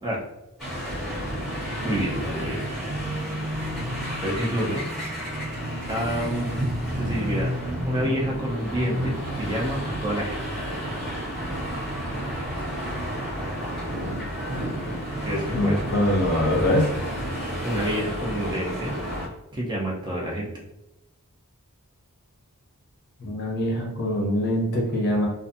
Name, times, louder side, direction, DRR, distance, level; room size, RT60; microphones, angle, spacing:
sound 1, 0.6-19.3, equal, ahead, 1.4 m, -30 dB
voice 1, 1.8-2.6 3.5-3.6 4.2-4.9 5.9-6.6 6.9-10.4 15.1-15.9 17.6-18.9 19.5-20.5, equal, 20° right, -3 dB, 0.5 m, -28 dB
voice 2, 15.5-16.9 23.2-25.3, left 1 dB, 45° left, -1 dB, 0.8 m, -23 dB
2.5 x 2.4 x 2.5 m, 0.89 s
head